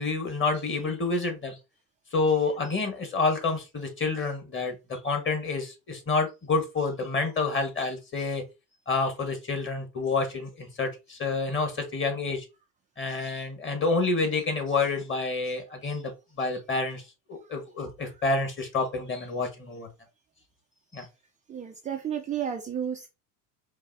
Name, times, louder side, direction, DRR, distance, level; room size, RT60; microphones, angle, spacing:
voice 1, 0.0-1.6 2.1-8.4 8.9-12.4 13.0-16.1 16.4-17.0 17.3-19.9 20.9-21.0, left 3 dB, 25° left, 1.5 m, -28 dB
voice 2, 21.5-23.1, right 9 dB, 20° right, 0.3 m, -32 dB
4.6 x 2.7 x 2.7 m
hypercardioid pair, 90°, 47 cm